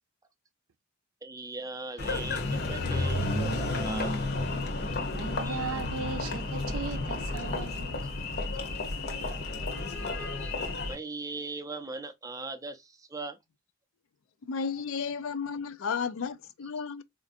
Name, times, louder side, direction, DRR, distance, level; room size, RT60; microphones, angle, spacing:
voice 1, 1.2-4.2 5.4-5.6 10.2-10.5 10.8-13.4, right 3 dB, 15° right, 0.5 m, -40 dB
Engine, 2.0-11.0, left 2 dB, 50° left, 0.8 m, -31 dB
voice 2, 4.7-8.0, right 5 dB, 80° right, 0.6 m, -38 dB
voice 3, 14.5-17.0, left 6 dB, 65° left, 0.4 m, -33 dB
4.3 x 2.5 x 2.5 m
head